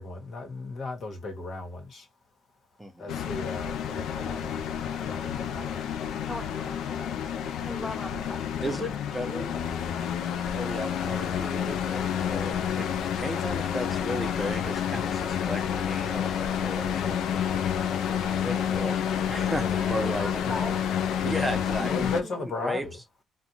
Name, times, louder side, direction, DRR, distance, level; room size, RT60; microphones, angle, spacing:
voice 1, 0.0-2.0 3.0-5.8 20.4-20.8 21.9-22.9, left 3 dB, 60° left, 1.2 m, -36 dB
voice 2, 2.8-3.1 8.6-9.6 10.5-12.9 13.1-17.2 18.4-19.0 19.3-20.4 21.2-21.9 22.6-22.9, equal, 10° right, 0.9 m, -34 dB
sound 1, 3.1-22.2, left 8 dB, 80° left, 0.4 m, -29 dB
voice 3, 6.3-7.3 7.6-9.0 19.6-20.8 21.8-22.4, left 1 dB, 15° left, 0.8 m, -39 dB
2.5 x 2.3 x 2.9 m
cardioid pair, 90°, 0 cm